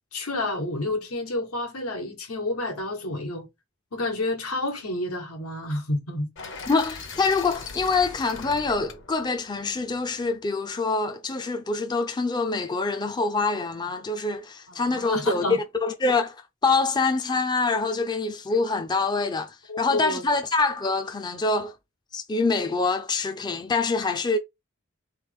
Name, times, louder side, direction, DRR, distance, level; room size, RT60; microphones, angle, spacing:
voice 1, 0.1-3.5 3.9-6.3 14.7-15.6 19.7-20.2, left 2 dB, 85° left, 1.4 m, -29 dB
sound 1, 6.4-10.4, left 4 dB, 55° left, 0.9 m, -41 dB
voice 2, 6.7-21.7 22.1-24.4, left 3 dB, 20° left, 0.4 m, -25 dB
3.8 x 3.2 x 3.4 m
head